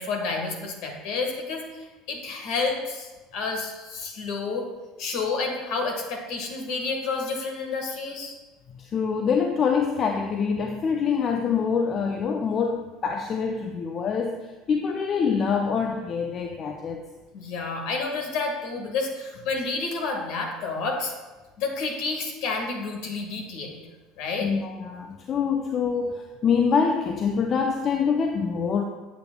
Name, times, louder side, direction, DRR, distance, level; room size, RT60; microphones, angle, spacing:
voice 1, 0.0-4.6 5.0-8.3 17.3-21.1 21.6-23.8 24.2-24.5, left 4 dB, 65° left, 1 dB, 1.6 m, -30 dB
voice 2, 8.8-17.1 24.4-28.8, left 6 dB, 45° left, 4 dB, 0.6 m, -25 dB
8.4 x 8.2 x 2.3 m, 1.2 s
hypercardioid pair, 70°, 0 cm